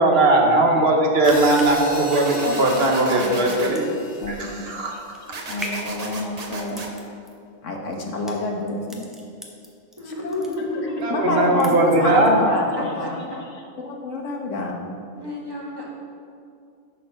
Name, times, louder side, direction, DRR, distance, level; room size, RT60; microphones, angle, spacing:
voice 1, 0.0-3.9 4.3-4.9 11.0-12.4, right 2 dB, 55° right, 1 dB, 1.3 m, -19 dB
sound 1, 1.0-10.0 10.3-11.0 11.3-12.0 12.4-12.5, left 1 dB, ahead, 0.9 m, -40 dB
Hi-hat, 1.2-5.4, left 1 dB, 60° left, 1.7 m, -34 dB
sound 2, 2.1-3.7 5.3-6.9, right 3 dB, 35° right, 0.8 m, -34 dB
voice 2, 2.4-3.6 4.2-4.5 4.9-6.8 7.6-9.1 10.0-10.5 10.7-10.8 11.1-13.3 13.8-14.8, left 2 dB, 85° left, 1 dB, 1.5 m, -28 dB
voice 3, 10.0-12.4 12.8-12.9 13.3-13.4 15.2-15.8, left 2 dB, 20° right, -5 dB, 1.9 m, -29 dB
10.0 x 4.5 x 6.3 m, 2.4 s
omnidirectional pair, 1.2 m